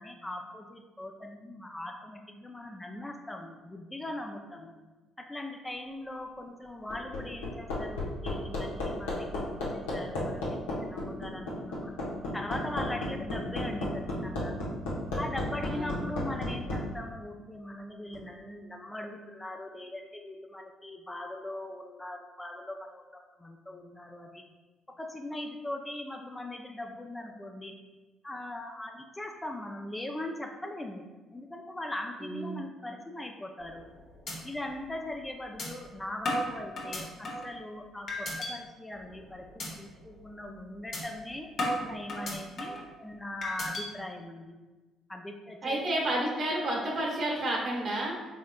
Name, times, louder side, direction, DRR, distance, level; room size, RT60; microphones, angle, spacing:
voice 1, 0.0-4.7 5.2-11.9 12.3-14.6 15.2-24.4 25.0-27.7 28.2-33.8 34.4-41.5 41.8-44.5 45.1-45.8, left 1 dB, 15° left, 2 dB, 0.5 m, -40 dB
Hammer, 6.6-16.8 18.1-18.2, left 2 dB, 90° left, 1.0 m, -33 dB
voice 2, 15.6-16.0 32.2-32.6 45.6-48.1, right 1 dB, 55° right, -2 dB, 1.1 m, -31 dB
sound 1, 33.6-33.9 34.3-34.4 34.8-34.9 35.6-35.7 36.3-37.5 38.1-38.5 38.9-39.2 39.6-39.7 40.1-40.3 40.9-41.0 41.6-42.9 43.4-43.8, left 1 dB, 55° left, 1.1 m, -33 dB
4.3 x 3.6 x 2.3 m, 1.2 s
hypercardioid pair, 60°, 0 cm